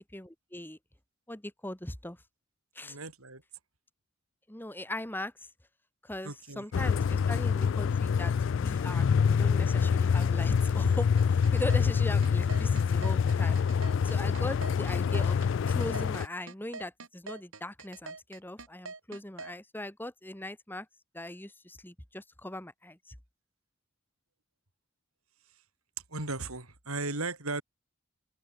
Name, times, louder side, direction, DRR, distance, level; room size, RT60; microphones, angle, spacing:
voice 1, 0.1-0.8 1.3-2.2 2.8-3.0 4.5-5.5 6.0-13.6 14.0-15.4 15.7-20.9 21.1-23.1, left 1 dB, 10° left, 1.6 m, -40 dB
voice 2, 2.8-3.4 6.2-6.6 26.1-27.6, right 3 dB, 90° right, 6.2 m, -36 dB
sound 1, 6.7-16.3, left 6 dB, 60° left, 0.3 m, -26 dB
sound 2, 11.2-19.5, right 4 dB, 70° right, 5.6 m, -44 dB
open air
head